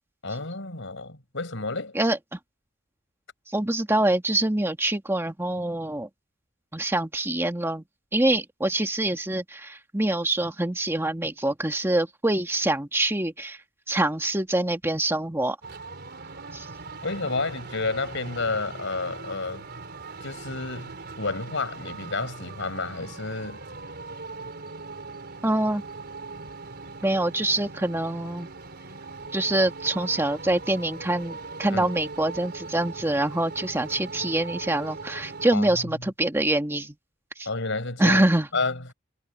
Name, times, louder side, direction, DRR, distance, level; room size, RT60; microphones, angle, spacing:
voice 1, 0.2-2.0 17.0-19.7 20.2-23.6 31.7-31.9 35.5-35.9 37.4-38.2 38.5-38.9, left 3 dB, 65° left, 6.2 m, -30 dB
voice 2, 3.5-6.1 6.7-7.8 8.1-13.6 13.9-15.6 16.5-16.7 25.4-25.8 27.0-28.5 29.3-36.9 37.4-37.5 38.0-38.5, right 1 dB, 10° right, 1.6 m, -25 dB
sound 1, 15.6-35.5, right 3 dB, 55° right, 4.1 m, -40 dB
head